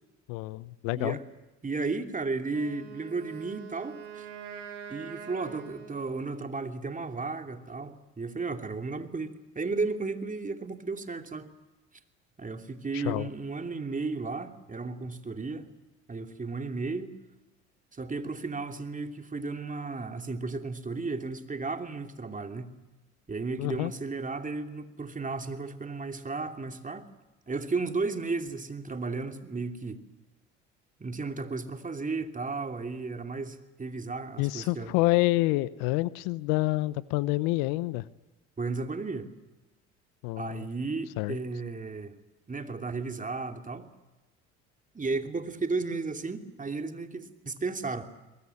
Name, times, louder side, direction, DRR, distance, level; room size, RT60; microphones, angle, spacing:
voice 1, 0.3-1.2 12.9-13.3 23.6-23.9 34.4-38.1 40.2-40.7 41.2-41.4, left 20 dB, 75° left, 18 dB, 0.9 m, -28 dB
voice 2, 0.9-1.2 1.6-4.3 4.9-11.5 12.4-15.7 16.1-17.1 17.9-22.8 23.3-27.1 27.5-30.0 31.0-34.9 38.6-39.3 40.4-42.1 42.5-43.9 44.9-48.0, right 3 dB, 20° right, 6 dB, 2.9 m, -34 dB
Wind instrument woodwind instrument, 2.5-6.6, right 7 dB, 90° right, 4.6 m, -44 dB
22.5 x 21.5 x 9.9 m, 1.1 s
hypercardioid pair, 70°, 34 cm